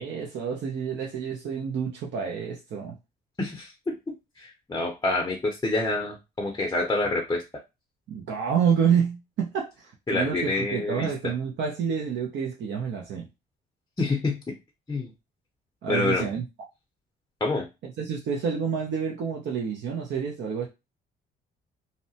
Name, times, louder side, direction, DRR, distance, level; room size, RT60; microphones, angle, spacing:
voice 1, 0.0-3.0 8.1-13.3 15.8-16.4 17.8-20.7, right 7 dB, 65° right, 0.6 m, -28 dB
voice 2, 3.4-4.0 4.4-7.4 10.1-11.3 14.0-14.4 14.9-15.1 15.9-16.2 17.4-17.7, left 2 dB, 20° left, 0.5 m, -27 dB
2.8 x 2.1 x 2.7 m
cardioid pair, 90°, 20 cm